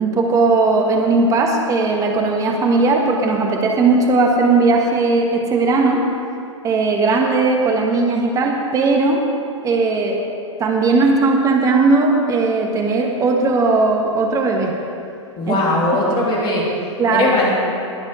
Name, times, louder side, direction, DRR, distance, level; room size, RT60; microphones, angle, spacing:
voice 1, 0.0-6.0 6.6-9.2 9.6-10.2 10.6-14.7 15.5-15.6 17.0-17.3, right 3 dB, 20° right, 1 dB, 1.5 m, -17 dB
voice 2, 15.4-16.6 17.1-17.5, left 2 dB, 30° left, -3 dB, 3.1 m, -19 dB
20.5 x 7.3 x 4.9 m, 2.5 s
figure-of-eight pair, 110°, 16 cm